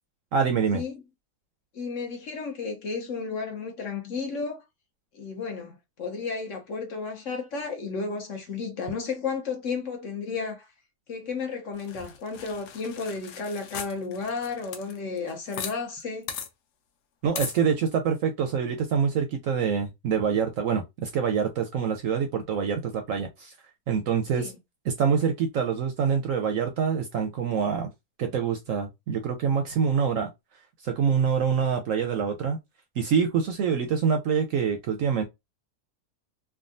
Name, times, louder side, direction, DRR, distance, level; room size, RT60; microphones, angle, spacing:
voice 1, 0.3-0.8 17.2-23.5 23.9-24.5 24.9-27.9 28.2-30.3 30.8-32.6 33.0-35.2, right 6 dB, 70° right, 0.8 m, -25 dB
voice 2, 1.7-4.6 5.1-10.7 11.1-16.3 24.3-24.5, left 4 dB, 55° left, 1.0 m, -33 dB
sound 1, 11.8-15.8 16.0-16.1 16.3-16.5 17.4-17.6, left 7 dB, 80° left, 1.2 m, -38 dB
3.5 x 2.2 x 2.5 m
omnidirectional pair, 1.7 m